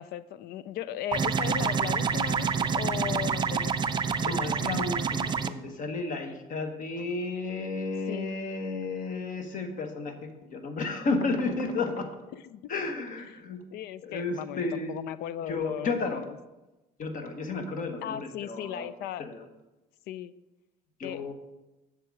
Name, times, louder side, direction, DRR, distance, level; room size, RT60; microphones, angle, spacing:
voice 1, 0.0-3.8 8.1-8.3 12.3-12.6 13.7-16.2 18.0-19.3 20.1-20.3 21.0-21.3, left 11 dB, 70° left, 17 dB, 0.4 m, -37 dB
sound 1, 1.1-5.5, right 6 dB, 25° right, 0.4 m, -27 dB
voice 2, 4.2-12.1 12.7-13.6 14.0-14.9 15.5-16.2 17.0-18.9 19.2-19.4 21.0-21.3, left 3 dB, 50° left, 6 dB, 1.3 m, -32 dB
7.6 x 6.5 x 4.8 m, 1.0 s
cardioid pair, 105°, 17 cm